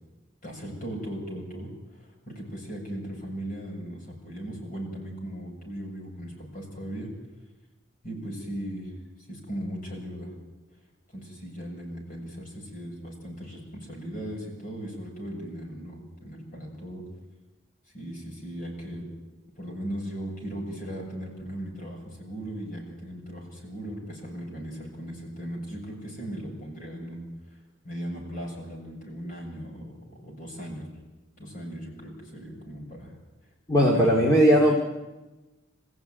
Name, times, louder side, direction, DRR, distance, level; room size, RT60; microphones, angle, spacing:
voice 1, 0.4-7.1 8.0-8.9 9.3-10.3 11.1-17.0 17.9-19.1 19.6-27.2 27.8-31.0 31.4-33.1 33.7-34.1, equal, 45° left, -1 dB, 7.5 m, -38 dB
voice 2, 33.7-34.8, equal, 20° left, -3 dB, 2.5 m, -18 dB
26.5 x 15.5 x 9.6 m, 1.1 s
head